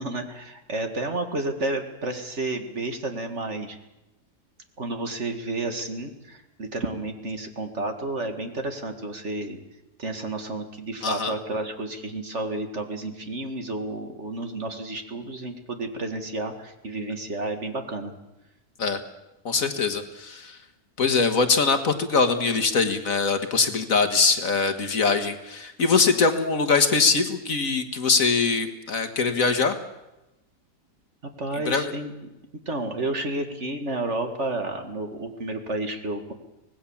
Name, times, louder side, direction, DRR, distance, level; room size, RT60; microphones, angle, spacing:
voice 1, 0.0-3.8 4.8-9.6 10.0-18.1 31.4-32.1 32.7-36.3, right 2 dB, 45° right, 6 dB, 2.1 m, -31 dB
voice 2, 11.0-11.3 18.8-19.0 19.5-20.6 21.0-29.8 31.7-31.9, left 4 dB, 55° left, 8 dB, 1.8 m, -22 dB
25.0 x 18.5 x 7.2 m, 0.99 s
omnidirectional pair, 1.8 m